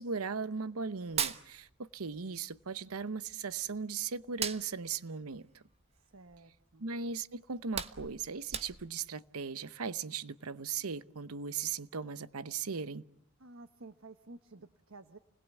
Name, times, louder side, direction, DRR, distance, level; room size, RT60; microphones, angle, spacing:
voice 1, 0.0-5.6 6.8-13.0, right 5 dB, 85° right, 0.9 m, -38 dB
Hands, 1.0-2.3 2.5-3.8 4.2-6.5 7.0-7.1 7.5-9.1, right 7 dB, 30° right, 1.1 m, -38 dB
voice 2, 5.9-6.9 13.4-15.2, right 2 dB, 65° right, 1.3 m, -53 dB
29.5 x 20.5 x 8.3 m
head